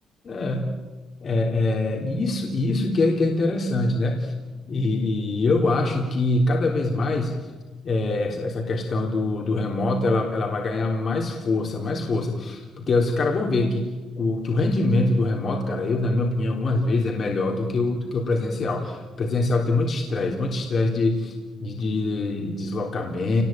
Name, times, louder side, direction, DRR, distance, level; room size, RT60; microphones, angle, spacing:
voice 1, 0.2-0.7 1.2-4.3 4.7-7.3 7.8-13.9 14.2-21.3 21.6-23.4, left 2 dB, 40° left, 1 dB, 3.4 m, -24 dB
28.5 x 19.5 x 9.0 m, 1.3 s
cardioid pair, 145°, 0 cm